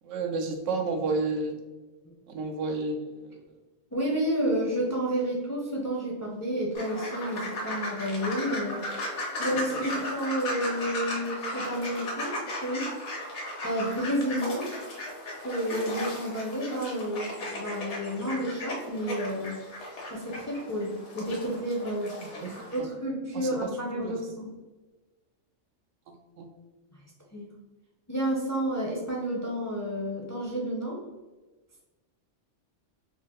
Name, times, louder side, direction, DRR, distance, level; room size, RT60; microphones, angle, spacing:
voice 1, 0.0-1.6 2.3-3.4 9.7-9.8 22.2-22.9 23.3-23.5 23.9-24.2 26.1-26.5, right 3 dB, 85° right, 4 dB, 0.9 m, -32 dB
voice 2, 3.9-8.8 9.4-12.4 12.6-12.9 13.6-14.7 15.4-19.5 20.1-22.2 22.7-24.5 27.3-27.5 28.1-31.0, equal, 20° left, -3 dB, 0.5 m, -30 dB
sound 1, 6.7-22.8, left 1 dB, 70° left, 1.2 m, -36 dB
3.8 x 2.4 x 3.0 m, 1.2 s
omnidirectional pair, 1.2 m